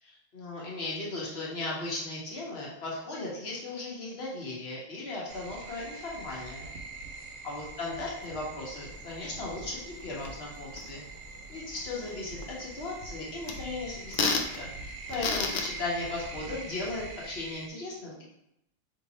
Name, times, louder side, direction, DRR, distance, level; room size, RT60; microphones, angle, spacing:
voice 1, 0.0-6.6 7.4-11.0 11.5-14.7 15.1-18.2, left 2 dB, 55° left, -4 dB, 1.2 m, -37 dB
sound 1, 5.3-17.7, right 3 dB, 85° right, 1.0 m, -44 dB
sound 2, 8.8-16.2, left 4 dB, 85° left, 0.4 m, -36 dB
3.6 x 2.8 x 4.1 m, 0.81 s
omnidirectional pair, 1.3 m